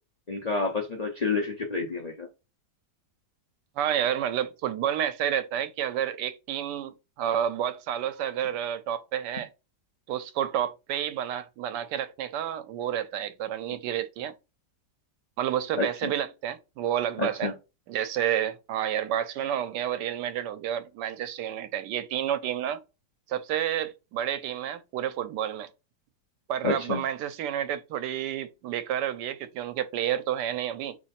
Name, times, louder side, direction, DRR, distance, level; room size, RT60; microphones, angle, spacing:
voice 1, 0.3-2.3 15.8-16.1 17.2-17.5 26.6-27.0, left 4 dB, 65° left, 0.4 m, -29 dB
voice 2, 3.8-9.5 10.1-14.3 15.4-17.5 17.9-22.8 23.3-25.7 26.5-31.0, right 10 dB, 85° right, 1.2 m, -30 dB
3.2 x 3.0 x 4.1 m
omnidirectional pair, 1.8 m